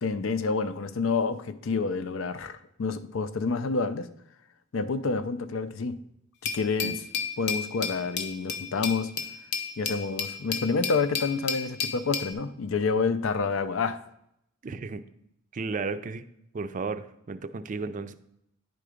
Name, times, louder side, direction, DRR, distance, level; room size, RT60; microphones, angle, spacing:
voice 1, 0.0-4.1 4.7-6.0 6.4-7.0 7.4-9.1 9.8-14.0, left 4 dB, 85° left, 12 dB, 0.5 m, -28 dB
Glass, 6.4-12.3, left 6 dB, 60° left, 0.8 m, -32 dB
voice 2, 14.6-15.0 15.5-16.2 16.5-18.2, right 4 dB, 40° right, 12 dB, 0.4 m, -34 dB
9.8 x 3.8 x 5.0 m, 0.76 s
head